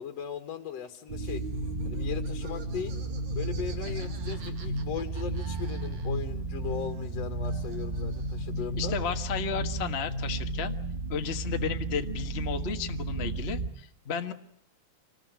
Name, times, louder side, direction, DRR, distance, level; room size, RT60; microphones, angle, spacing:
voice 1, 0.0-1.4 1.8-2.9 3.3-8.9, left 8 dB, 60° left, 6 dB, 2.4 m, -38 dB
sound 1, 1.1-13.7, right 2 dB, 50° right, 0.6 m, -33 dB
Laughter, 1.2-6.4 6.6-8.6, right 5 dB, 65° right, 3.6 m, -51 dB
voice 2, 8.8-10.7 11.1-14.3, left 7 dB, 45° left, 6 dB, 0.8 m, -33 dB
27.0 x 20.0 x 9.3 m, 0.69 s
omnidirectional pair, 3.5 m